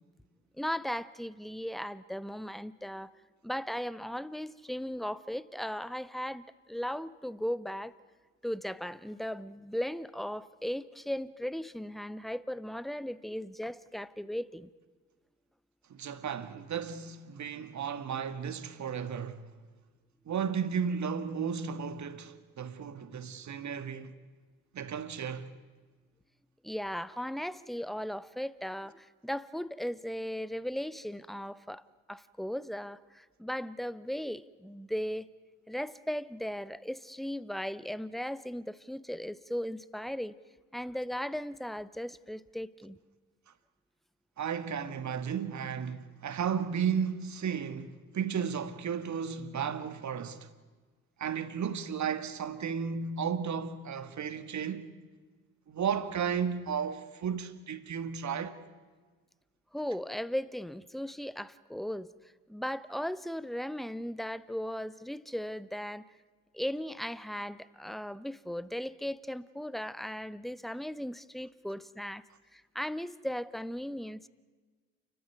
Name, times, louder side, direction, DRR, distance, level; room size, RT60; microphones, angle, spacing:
voice 1, 0.6-3.1 3.4-7.9 8.4-14.7 26.6-31.8 32.1-35.3 35.7-40.4 40.7-43.0 59.7-62.1 62.5-66.0 66.5-72.2 72.5-74.3, equal, ahead, 0.8 m, -37 dB
voice 2, 15.9-19.5 20.3-24.1 24.7-25.5 44.4-50.5 51.2-54.9 55.7-58.6, right 7 dB, 40° right, 1.8 m, -34 dB
29.0 x 14.5 x 9.4 m
hypercardioid pair, 55°, 42 cm